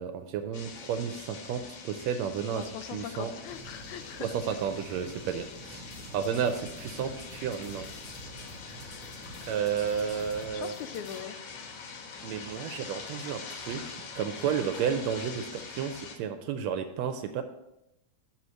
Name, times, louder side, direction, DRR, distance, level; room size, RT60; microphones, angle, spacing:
voice 1, 0.0-3.3 4.2-5.8 6.1-7.9 9.4-10.7 12.2-17.4, right 7 dB, 80° right, 8 dB, 1.7 m, -32 dB
sound 1, 0.5-16.2, left 5 dB, 65° left, 1.7 m, -44 dB
voice 2, 2.5-4.4 10.5-11.4, left 10 dB, 90° left, 10 dB, 2.0 m, -40 dB
sound 2, 3.4-10.4, right 1 dB, 5° right, 0.5 m, -49 dB
sound 3, 5.8-11.2, left 1 dB, 45° left, 1.3 m, -51 dB
6.4 x 4.3 x 6.2 m, 0.90 s
omnidirectional pair, 3.3 m